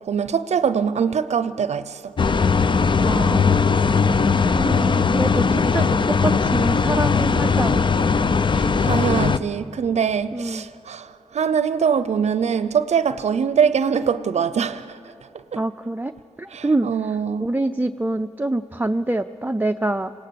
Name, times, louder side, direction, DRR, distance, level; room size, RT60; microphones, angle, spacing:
voice 1, 0.0-2.1 8.5-15.0 15.5-15.6 16.5-17.5, right 7 dB, 65° right, 0.6 m, -23 dB
sound 1, 2.2-9.4, left 5 dB, 40° left, 0.6 m, -19 dB
voice 2, 3.0-3.8 4.5-7.9 10.3-10.7 15.5-16.1 16.4-20.1, right 2 dB, 15° right, 0.5 m, -26 dB
21.0 x 17.5 x 8.6 m
cardioid pair, 65°, 12 cm